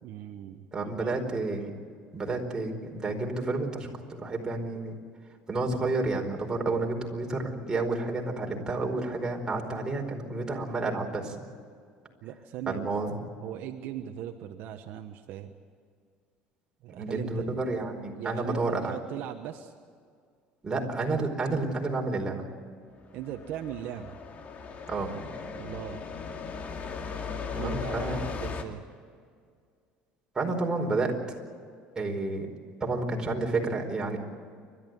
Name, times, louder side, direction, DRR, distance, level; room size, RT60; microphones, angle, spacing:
voice 1, 0.0-1.2 12.2-12.9 13.4-15.5 16.8-17.5 18.1-19.7 23.1-24.1 25.6-26.0 27.3-28.1 28.4-28.8, right 11 dB, 65° right, 5 dB, 1.2 m, -39 dB
voice 2, 0.7-1.7 2.1-5.0 5.5-11.3 12.7-13.2 16.9-19.0 20.6-22.4 24.9-25.1 27.5-28.2 30.3-31.2 31.9-32.5 32.8-34.2, right 3 dB, 20° right, 1 dB, 4.7 m, -30 dB
sound 1, 23.0-28.6, left 5 dB, 40° left, 2.4 m, -37 dB
29.5 x 13.0 x 9.4 m, 2.1 s
supercardioid pair, 110°, 4 cm